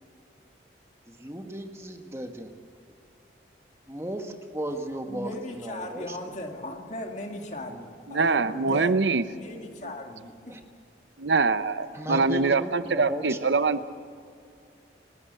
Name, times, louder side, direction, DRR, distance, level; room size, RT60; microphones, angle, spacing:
voice 1, 1.1-2.5 3.9-6.5 10.5-10.6 11.9-13.6, right 1 dB, 15° right, 4 dB, 1.6 m, -35 dB
voice 2, 5.1-9.0 9.3-10.6, left 1 dB, 40° left, 3 dB, 2.3 m, -37 dB
voice 3, 8.1-9.2 11.2-13.8, right 4 dB, 80° right, 13 dB, 0.8 m, -24 dB
29.5 x 13.0 x 8.2 m, 2.4 s
head